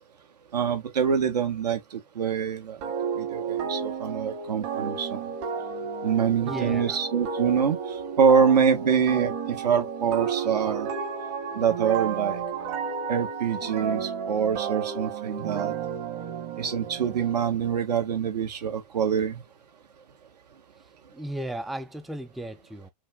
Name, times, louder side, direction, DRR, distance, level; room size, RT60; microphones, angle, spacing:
voice 1, 0.5-1.8 2.1-2.8 3.2-5.2 6.0-7.8 8.2-10.9 11.5-12.4 13.1-15.7 16.6-19.4, right 7 dB, 85° right, 1.6 m, -25 dB
sound 1, 2.8-17.4, right 6 dB, 55° right, 1.7 m, -32 dB
voice 2, 6.4-7.0 21.1-22.9, right 1 dB, ahead, 0.4 m, -35 dB
5.5 x 2.3 x 3.8 m
hypercardioid pair, 120°, 20 cm